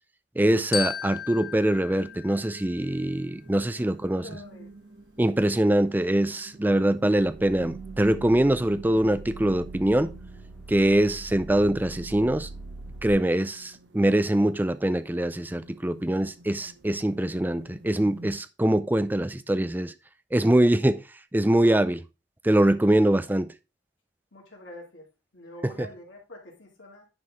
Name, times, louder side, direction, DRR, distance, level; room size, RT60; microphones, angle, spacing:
voice 1, 0.4-4.2 5.2-10.1 10.7-12.5 13.0-19.9 20.3-21.0 21.3-22.0 22.4-23.5, right 1 dB, 10° right, 0.4 m, -23 dB
Glockenspiel, 0.7-3.2, left 8 dB, 45° left, 0.8 m, -35 dB
sound 1, 1.6-18.3, right 3 dB, 65° right, 1.1 m, -49 dB
voice 2, 3.7-4.7 24.3-25.1 25.3-27.1, left 1 dB, 75° left, 2.7 m, -46 dB
sound 2, 7.1-13.1, right 2 dB, 5° left, 1.1 m, -42 dB
9.7 x 4.6 x 3.7 m
head